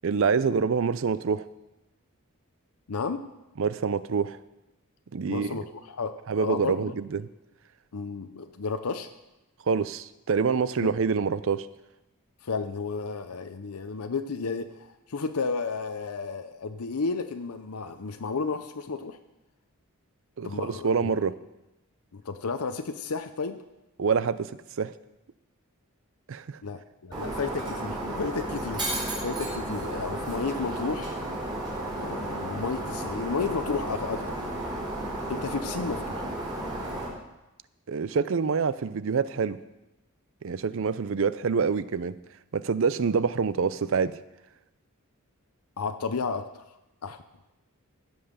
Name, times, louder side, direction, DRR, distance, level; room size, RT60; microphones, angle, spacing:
voice 1, 0.0-1.5 3.6-4.4 5.1-5.6 6.3-7.3 9.7-11.7 20.4-21.3 24.0-24.5 24.8-24.9 26.3-26.6 37.9-39.6 40.4-42.2 42.5-44.2, right 5 dB, 60° right, 15 dB, 0.5 m, -26 dB
voice 2, 2.9-3.2 5.3-6.9 7.9-9.1 10.8-10.9 12.4-19.2 20.4-21.1 22.1-23.6 26.6-28.9 29.2-31.1 31.9-34.5 35.3-36.3 45.8-46.6 47.0-47.2, left 4 dB, 80° left, 8 dB, 0.7 m, -32 dB
Shatter, 27.1-37.1, right 1 dB, 20° right, 3.9 m, -33 dB
15.5 x 5.6 x 6.7 m, 0.97 s
head